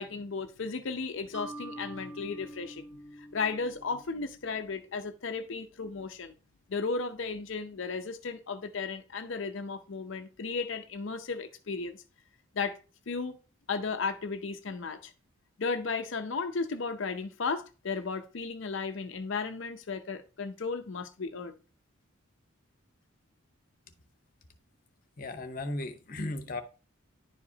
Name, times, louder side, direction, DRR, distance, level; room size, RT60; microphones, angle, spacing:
voice 1, 0.0-6.3 6.7-12.0 12.5-12.8 13.1-13.4 13.7-15.1 15.6-21.6, left 4 dB, 65° left, 0.6 m, -35 dB
Mallet percussion, 1.3-4.6, right 1 dB, 5° right, 0.8 m, -46 dB
voice 2, 25.2-26.6, left 2 dB, 40° left, 0.8 m, -36 dB
10.5 x 4.9 x 2.8 m
head